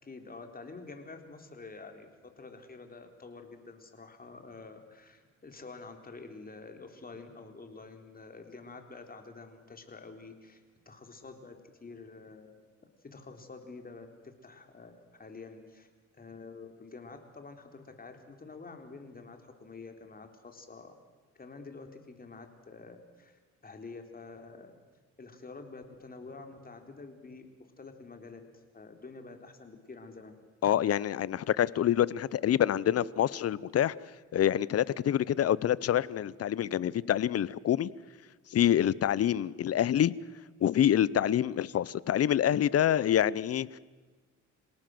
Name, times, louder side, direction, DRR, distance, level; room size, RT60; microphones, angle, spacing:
voice 1, 0.0-12.6 13.0-15.9 16.1-21.0 21.4-24.8 25.2-30.3, left 3 dB, 30° left, 3.7 m, -48 dB
voice 2, 30.6-33.9 34.3-37.9 38.5-40.1 40.6-43.8, left 10 dB, 55° left, 0.8 m, -26 dB
27.0 x 18.0 x 7.8 m
cardioid pair, 90°, 30 cm